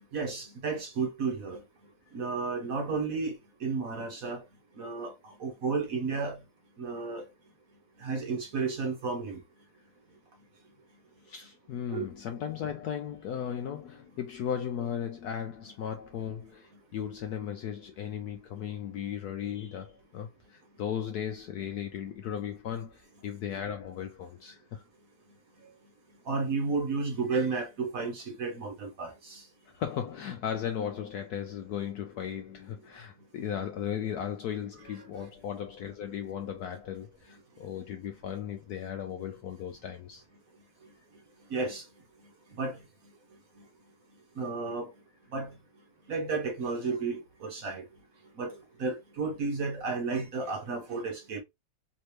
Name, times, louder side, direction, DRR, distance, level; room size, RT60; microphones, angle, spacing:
voice 1, 0.1-1.6 2.1-3.3 3.6-4.4 4.8-6.4 6.8-7.2 8.0-9.4 11.9-12.1 26.3-29.4 41.5-41.8 42.6-42.8 44.4-44.9 45.3-45.5 46.1-47.8 48.4-48.5 48.8-51.4, right 4 dB, 55° right, 1.0 m, -32 dB
voice 2, 11.2-24.8 29.7-40.2, left 9 dB, 75° left, 0.9 m, -36 dB
3.3 x 2.8 x 3.1 m
omnidirectional pair, 2.1 m